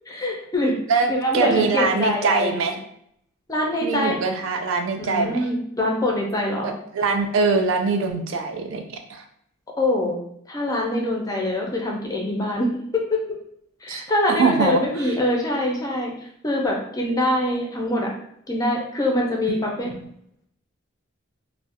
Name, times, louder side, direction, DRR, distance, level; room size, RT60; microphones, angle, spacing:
voice 1, 0.1-0.7 1.1-2.7 3.5-4.2 5.0-6.7 9.8-10.2 10.5-13.2 13.8-16.1 16.4-18.1 18.5-19.9, left 1 dB, 20° left, -1 dB, 0.4 m, -24 dB
voice 2, 0.9-2.7 3.8-5.5 6.6-8.8 9.1-9.2 13.9-14.0 14.4-14.8 19.5-19.6 19.8-20.0, right 4 dB, 80° right, 5 dB, 0.4 m, -23 dB
2.3 x 2.0 x 2.7 m, 0.70 s
head